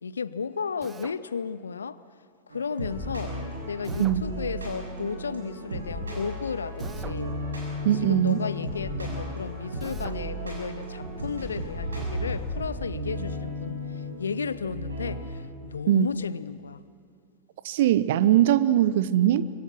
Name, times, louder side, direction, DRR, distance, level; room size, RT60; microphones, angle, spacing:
voice 1, 0.0-2.0 2.5-3.4 3.7-7.3 8.0-16.8, left 5 dB, 70° left, 0.7 m, -34 dB
Drill, 0.8-1.2 3.8-4.2 6.8-7.2 9.8-10.2, right 6 dB, 20° right, 1.0 m, -44 dB
sound 1, 2.5-15.3, equal, 75° right, 7.1 m, -34 dB
voice 2, 7.8-8.4 15.9-16.1 17.6-19.5, right 12 dB, 55° right, 0.8 m, -21 dB
26.5 x 25.5 x 6.0 m
figure-of-eight pair, 90°, 0 cm